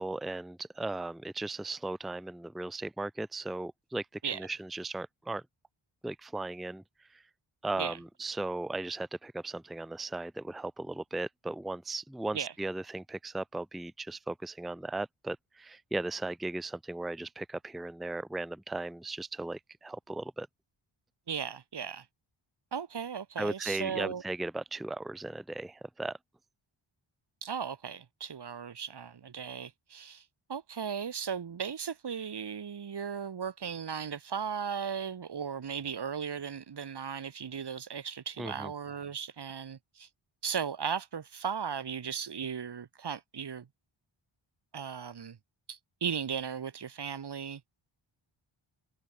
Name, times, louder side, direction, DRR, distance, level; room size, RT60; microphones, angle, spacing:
voice 1, 0.0-4.1 4.3-5.4 6.0-6.8 7.1-7.2 7.6-20.5 23.4-26.2 38.4-38.7, right 2 dB, ahead, 0.6 m, -37 dB
voice 2, 21.3-22.1 22.7-24.2 27.4-30.2 30.5-40.1 40.4-43.7 44.7-45.4 45.7-47.6, right 7 dB, 55° right, 1.0 m, -36 dB
wide cardioid pair, 90°, 50 cm